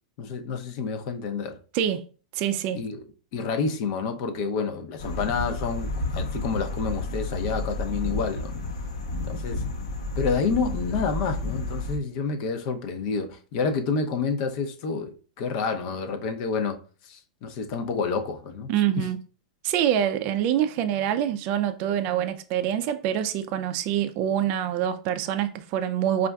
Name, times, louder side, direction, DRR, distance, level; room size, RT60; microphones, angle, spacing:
voice 1, 0.2-1.6 2.8-3.0 3.3-8.5 9.2-9.6 10.2-16.8 17.0-18.7 19.0-19.1, left 5 dB, 55° left, 0.6 m, -29 dB
voice 2, 2.3-2.8 18.7-19.2 19.6-26.3, right 10 dB, 45° right, 0.4 m, -25 dB
sound 1, 5.0-12.0, left 2 dB, 85° left, 0.9 m, -31 dB
5.1 x 2.4 x 2.3 m
hypercardioid pair, 115°, 3 cm